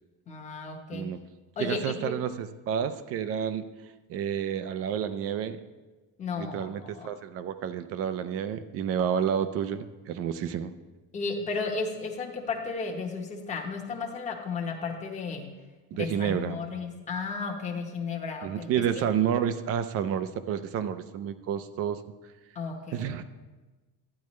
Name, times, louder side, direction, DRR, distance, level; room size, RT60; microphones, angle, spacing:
voice 1, 0.3-1.1 1.6-2.2 6.2-7.1 11.1-15.5 15.9-19.0 22.5-23.2, left 4 dB, 20° left, 0 dB, 1.0 m, -34 dB
voice 2, 1.6-3.7 4.1-5.6 6.4-10.7 15.9-16.6 18.4-22.0 22.9-23.2, right 8 dB, 40° right, 11 dB, 0.4 m, -30 dB
12.0 x 9.5 x 3.1 m, 1.2 s
cardioid pair, 180°, 35 cm